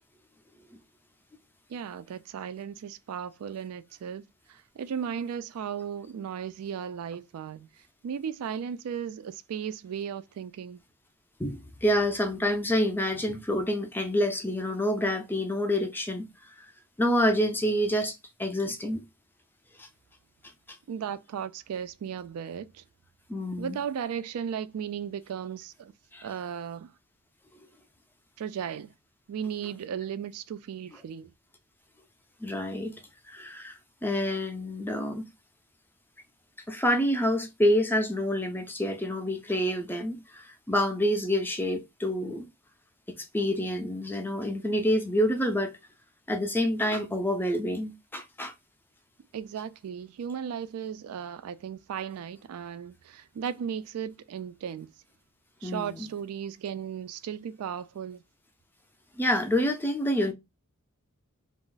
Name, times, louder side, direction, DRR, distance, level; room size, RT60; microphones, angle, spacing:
voice 1, 1.7-7.7 8.0-10.8 20.9-22.8 23.5-25.9 26.2-26.9 28.4-28.9 29.3-31.3 49.3-54.9 55.6-58.2, right 8 dB, 75° right, 0.3 m, -36 dB
voice 2, 11.4-16.2 17.0-19.0 19.8-19.9 23.3-23.8 26.1-26.3 32.4-35.2 36.7-42.5 43.1-45.7 46.3-48.5 55.6-56.1 59.2-60.3, equal, 10° left, 0.4 m, -27 dB
2.4 x 2.0 x 3.8 m
head